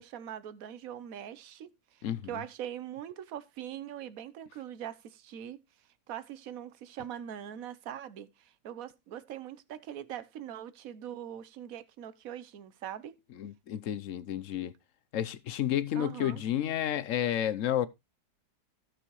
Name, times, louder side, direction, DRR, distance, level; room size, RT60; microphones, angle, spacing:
voice 1, 0.0-5.6 6.1-13.2 15.9-16.4, right 10 dB, 60° right, 1.2 m, -42 dB
voice 2, 2.0-2.4 13.4-14.7 15.1-17.9, left 11 dB, 60° left, 0.9 m, -31 dB
15.5 x 6.2 x 3.1 m
omnidirectional pair, 1.8 m